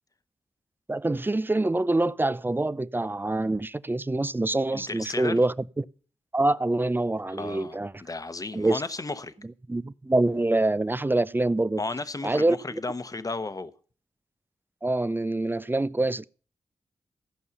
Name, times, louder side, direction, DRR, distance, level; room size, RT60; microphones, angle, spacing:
voice 1, 0.9-5.9 6.3-7.9 8.5-8.8 9.7-11.8 12.2-12.8 14.8-16.3, right 2 dB, 20° right, 0.5 m, -25 dB
voice 2, 4.7-5.4 7.4-9.3 11.8-13.7, left 3 dB, 30° left, 1.0 m, -34 dB
15.0 x 5.5 x 7.0 m
cardioid pair, 55°, 11 cm